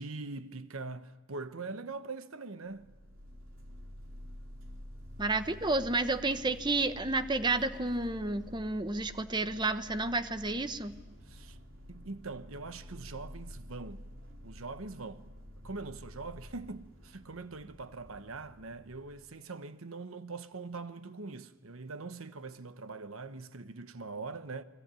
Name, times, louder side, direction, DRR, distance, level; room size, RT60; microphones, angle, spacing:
voice 1, 0.0-2.9 11.3-11.6 11.9-14.0 14.4-15.3 15.6-24.6, right 3 dB, 85° right, 1.1 m, -42 dB
sound 1, 2.7-19.2, equal, 70° right, 3.7 m, -49 dB
voice 2, 5.2-10.9, right 2 dB, 20° right, 1.0 m, -31 dB
29.0 x 21.5 x 9.1 m
head